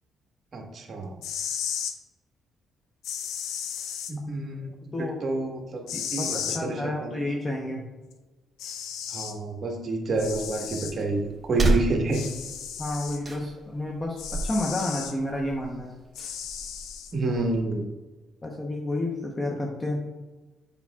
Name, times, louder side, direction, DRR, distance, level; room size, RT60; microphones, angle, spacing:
voice 1, 0.5-1.1 4.1-5.8 6.1-7.2 9.1-12.2 17.1-17.8, right 2 dB, 45° right, 2 dB, 1.3 m, -29 dB
sound 1, 1.1-2.0 3.0-4.1 5.9-6.6 8.1-8.2 8.6-9.4 10.2-11.0 12.1-13.2 14.2-15.1 16.2-17.1, left 8 dB, 85° left, 0.5 m, -34 dB
voice 2, 4.8-5.2 5.9-7.8 12.8-15.9 18.4-20.0, left 1 dB, 30° left, 0 dB, 0.9 m, -30 dB
sound 2, 10.1-17.6, right 2 dB, 25° right, 1.0 m, -33 dB
7.2 x 5.5 x 2.3 m, 1.2 s
cardioid pair, 90°, 0 cm